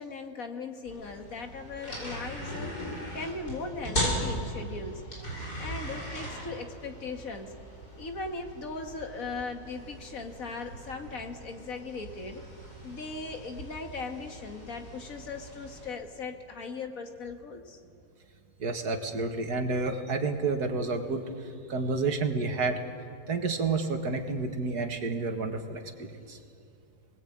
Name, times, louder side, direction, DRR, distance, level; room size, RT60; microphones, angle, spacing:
voice 1, 0.0-2.7 3.1-5.0 5.6-7.5 8.0-12.4 12.8-17.8, left 4 dB, 60° left, 4 dB, 2.2 m, -38 dB
sound 1, 0.9-15.9, equal, 85° left, 7.4 m, -38 dB
voice 2, 18.6-22.8 23.3-26.4, right 3 dB, 90° right, 5 dB, 2.4 m, -30 dB
28.0 x 20.5 x 8.8 m, 2.7 s
omnidirectional pair, 1.6 m